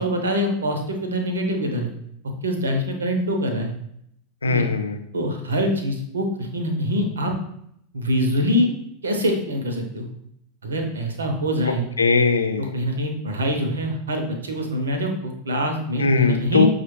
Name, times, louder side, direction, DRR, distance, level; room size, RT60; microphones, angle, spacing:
voice 1, 0.0-1.9 2.4-3.7 4.5-4.6 5.1-7.3 7.9-8.7 9.0-10.1 10.6-11.8 12.6-16.7, equal, 70° right, 4 dB, 0.7 m, -24 dB
voice 2, 4.4-5.0 12.0-12.7 16.0-16.7, left 4 dB, 75° left, 7 dB, 0.4 m, -20 dB
6.0 x 2.4 x 3.1 m, 0.73 s
figure-of-eight pair, 85°, 0 cm